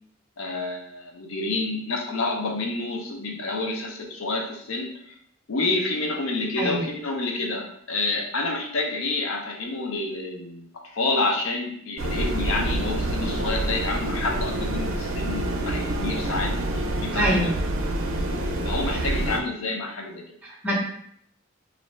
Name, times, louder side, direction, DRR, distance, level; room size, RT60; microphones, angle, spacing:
voice 1, 0.4-5.2 5.5-17.5 18.6-20.2, left 2 dB, 75° left, 1 dB, 0.5 m, -29 dB
sound 1, 12.0-19.4, right 1 dB, 75° right, 0.4 m, -27 dB
voice 2, 17.1-17.4 18.9-19.1 20.4-20.7, equal, 10° right, -6 dB, 0.6 m, -25 dB
2.5 x 2.1 x 3.2 m, 0.67 s
head